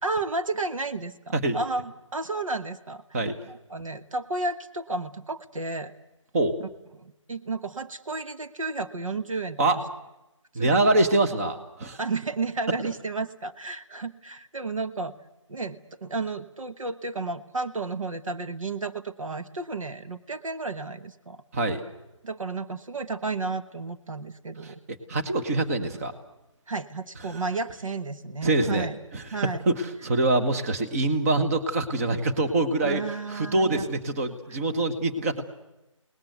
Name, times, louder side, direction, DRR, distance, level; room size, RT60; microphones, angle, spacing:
voice 1, 0.0-3.0 3.5-5.9 7.0-9.8 10.5-10.8 12.0-15.1 15.5-21.4 22.2-24.8 26.7-28.9 29.3-29.6 32.8-33.8, right 3 dB, 75° right, 9 dB, 1.3 m, -32 dB
voice 2, 10.5-12.0 21.5-21.8 24.6-24.7 25.1-26.1 27.3-27.4 28.4-28.9 29.1-33.0 33.3-35.4, right 2 dB, 25° right, 6 dB, 1.5 m, -24 dB
29.0 x 19.5 x 8.1 m, 0.95 s
figure-of-eight pair, 160°, 17 cm